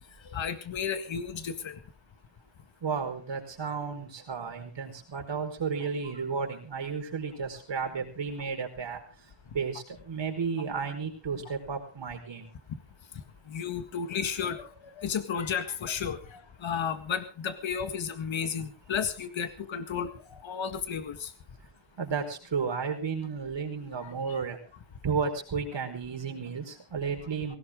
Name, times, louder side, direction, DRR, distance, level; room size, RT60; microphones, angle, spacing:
voice 1, 0.3-1.8 13.5-14.7 15.0-21.3 24.0-24.1, left 7 dB, 75° left, 10 dB, 2.0 m, -33 dB
voice 2, 2.8-9.0 9.5-12.5 22.0-24.6 25.0-27.6, right 5 dB, 65° right, 4 dB, 4.8 m, -33 dB
19.0 x 17.0 x 3.6 m, 0.34 s
cardioid pair, 75°, 46 cm